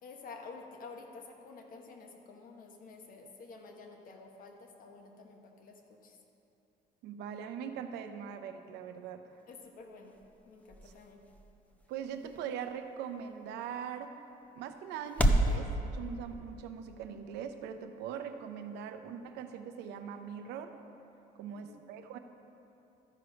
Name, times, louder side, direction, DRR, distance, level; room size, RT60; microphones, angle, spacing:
voice 1, 0.0-6.2 9.5-10.2 10.4-11.2 21.5-21.8, left 4 dB, 55° left, 2 dB, 1.2 m, -50 dB
voice 2, 7.0-9.2 11.9-14.1 14.6-20.8 21.4-22.2, right 7 dB, 85° right, 8 dB, 0.7 m, -41 dB
sound 1, 9.3-15.6, right 1 dB, 10° left, 0.6 m, -35 dB
13.0 x 4.9 x 5.1 m, 2.8 s
cardioid pair, 110°, 17 cm